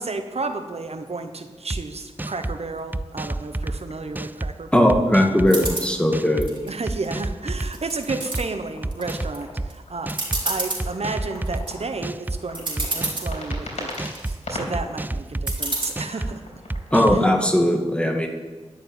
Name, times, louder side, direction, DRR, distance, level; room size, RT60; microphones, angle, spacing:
voice 1, 0.0-5.0 6.6-10.1 10.4-14.1 14.5-16.4 17.1-17.2, right 3 dB, 65° right, 7 dB, 1.1 m, -32 dB
sound 1, 1.7-1.8 2.2-2.6 2.9-3.8 4.1-4.5 4.9-5.7 6.1-6.5 6.9-7.7 8.1-8.4 8.8-9.7 10.1-10.4 10.8-11.6 12.0-12.4 12.8-13.6 14.0-14.4 14.7-15.6 16.0-16.3 16.7-17.2, right 2 dB, 15° right, 0.4 m, -29 dB
sound 2, 3.2-4.4 5.3-6.7 6.9-14.9 15.5-17.3, left 1 dB, 75° left, 3.5 m, -40 dB
voice 2, 4.7-6.5 16.9-18.3, left 1 dB, 10° left, 2 dB, 2.2 m, -19 dB
sound 3, 5.5-5.9 6.4-7.2 7.6-8.4 8.9-9.4 9.7-9.8 10.1-10.8 11.4-11.7 12.3-12.4 12.5-13.3 13.8-14.3 15.5-15.9, right 2 dB, 45° right, 4.0 m, -28 dB
11.5 x 6.8 x 9.0 m, 1.3 s
cardioid pair, 45°, 12 cm